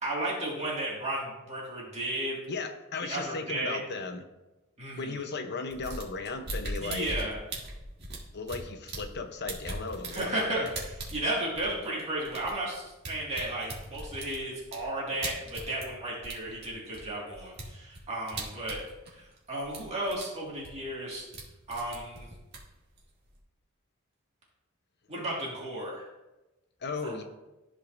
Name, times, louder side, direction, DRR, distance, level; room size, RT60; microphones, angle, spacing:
voice 1, 0.0-2.4 3.0-3.8 4.8-5.1 6.8-7.4 10.1-18.8 19.1-21.3 21.7-22.3 25.1-26.1 27.0-27.2, right 1 dB, 30° right, -5 dB, 2.0 m, -34 dB
voice 2, 2.5-4.2 4.9-7.1 8.3-10.6 26.8-27.2, left 4 dB, 55° left, 6 dB, 0.8 m, -36 dB
sound 1, 5.7-9.2 9.5-15.9 16.2-19.4 19.6-20.2 20.5-21.5 21.7-23.4, right 2 dB, 50° right, 1.8 m, -40 dB
13.5 x 5.0 x 2.6 m, 1.0 s
head